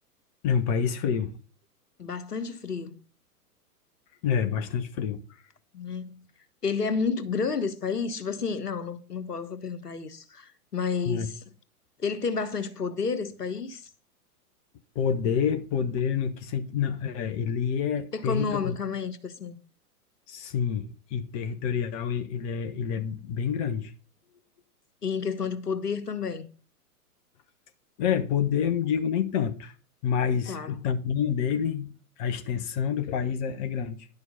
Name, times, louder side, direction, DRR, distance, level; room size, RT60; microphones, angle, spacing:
voice 1, 0.4-1.3 4.2-5.2 11.1-11.3 14.9-18.7 20.3-23.9 28.0-29.7 30.0-31.9 32.2-34.1, left 7 dB, 25° left, 0.8 m, -28 dB
voice 2, 2.0-3.0 5.7-6.2 6.6-11.4 12.0-13.9 18.1-19.6 25.0-26.5 30.5-30.8, left 5 dB, 75° left, 1.4 m, -31 dB
11.0 x 6.3 x 5.2 m
figure-of-eight pair, 105°, 47 cm